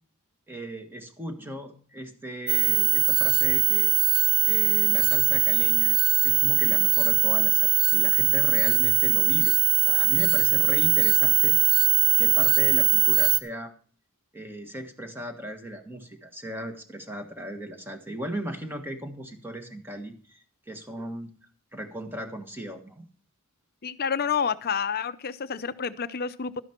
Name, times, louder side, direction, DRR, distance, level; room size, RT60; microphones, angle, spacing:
voice 1, 0.5-3.9 4.4-6.0 6.2-11.6 12.2-13.7 14.3-21.3 21.7-23.1, right 1 dB, 10° right, 5 dB, 1.5 m, -37 dB
sound 1, 2.5-13.4, right 11 dB, 80° right, 0.8 m, -21 dB
voice 2, 23.8-26.6, left 6 dB, 45° left, 14 dB, 0.6 m, -29 dB
12.5 x 10.0 x 4.4 m, 0.41 s
head